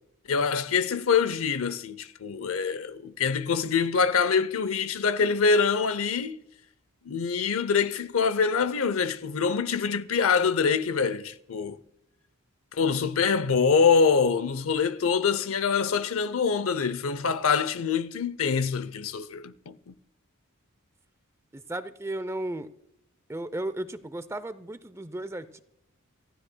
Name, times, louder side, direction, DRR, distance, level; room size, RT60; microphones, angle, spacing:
voice 1, 0.3-6.4 7.1-11.8 12.8-19.9, left 5 dB, 70° left, 0.6 m, -25 dB
voice 2, 21.5-22.7 23.3-25.6, right 1 dB, 10° right, 0.5 m, -34 dB
27.5 x 15.5 x 2.2 m
head